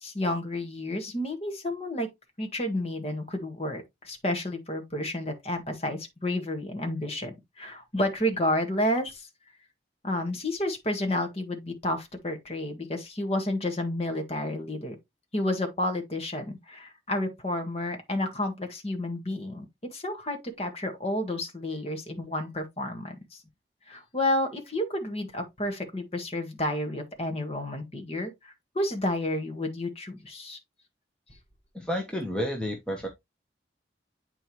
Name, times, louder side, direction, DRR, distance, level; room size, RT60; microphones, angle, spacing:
voice 1, 0.0-2.1 2.4-9.3 10.0-15.0 15.3-19.6 19.9-23.4 23.9-30.6, left 1 dB, 35° left, 1.6 m, -31 dB
voice 2, 31.7-33.1, equal, 5° left, 1.1 m, -30 dB
8.8 x 4.6 x 3.0 m
head